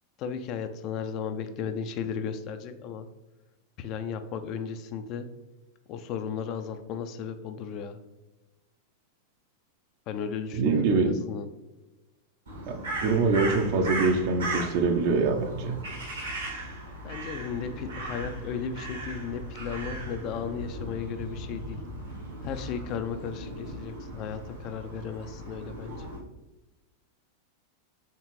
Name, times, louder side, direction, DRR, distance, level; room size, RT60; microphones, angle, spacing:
voice 1, 0.2-3.1 3.8-5.3 5.9-8.0 10.1-11.5 17.0-21.8 22.4-26.1, left 7 dB, 40° left, 9 dB, 0.4 m, -35 dB
voice 2, 10.5-11.1 12.7-15.8, right 4 dB, 45° right, 6 dB, 0.6 m, -24 dB
Crow, 12.5-26.2, right 1 dB, 70° right, 1.4 m, -37 dB
4.5 x 3.2 x 3.0 m, 1.1 s
figure-of-eight pair, 90°, 0 cm